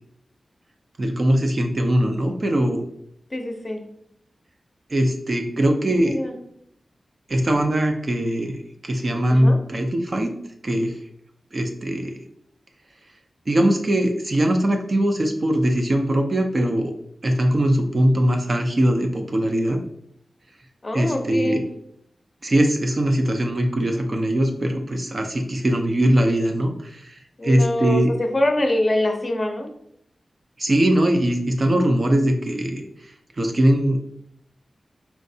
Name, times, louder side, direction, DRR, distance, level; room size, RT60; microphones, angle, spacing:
voice 1, 1.0-2.8 4.9-6.2 7.3-10.3 10.6-10.9 11.5-12.1 13.5-16.9 17.2-19.8 20.9-21.6 22.4-28.1 30.6-32.8 33.4-34.0, right 1 dB, 40° right, 3 dB, 0.5 m, -21 dB
voice 2, 3.3-3.8 5.9-6.4 9.3-9.6 20.8-21.7 27.4-29.7, left 1 dB, 30° left, 3 dB, 0.6 m, -24 dB
4.5 x 3.1 x 2.7 m, 0.73 s
wide cardioid pair, 125°, 0 cm